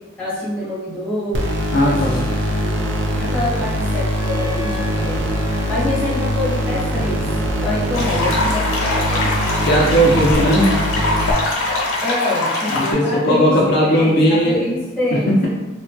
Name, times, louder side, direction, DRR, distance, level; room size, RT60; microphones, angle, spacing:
voice 1, 0.2-1.4 1.8-2.9 3.2-5.2 5.7-7.3 7.6-9.3 12.0-13.5 13.8-15.5, left 1 dB, 5° left, -9 dB, 0.8 m, -26 dB
sound 1, 1.3-11.3, equal, 60° right, 0.4 m, -22 dB
voice 2, 1.7-2.2 9.6-10.7 12.7-14.6 15.1-15.5, equal, 50° left, -3 dB, 0.4 m, -16 dB
Wind instrument woodwind instrument, 4.1-9.8, left 2 dB, 85° right, 0.8 m, -36 dB
sound 2, 7.9-12.9, left 2 dB, 85° left, 0.7 m, -22 dB
2.9 x 2.1 x 2.6 m, 1.1 s
head